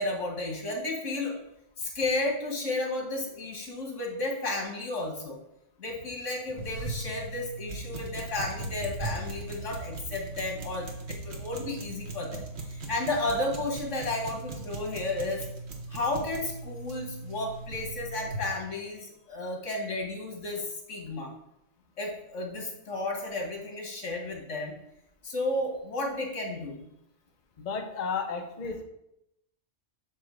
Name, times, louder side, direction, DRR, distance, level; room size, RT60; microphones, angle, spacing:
voice 1, 0.0-1.4 1.8-5.4 5.8-15.4 15.9-21.3 22.0-24.7 25.2-26.9, left 2 dB, 85° left, 0 dB, 1.9 m, -33 dB
sound 1, 6.6-18.5, right 2 dB, 60° right, 1.4 m, -39 dB
voice 2, 27.6-28.8, left 5 dB, 40° left, 4 dB, 0.8 m, -33 dB
7.8 x 3.1 x 6.3 m, 0.81 s
omnidirectional pair, 1.2 m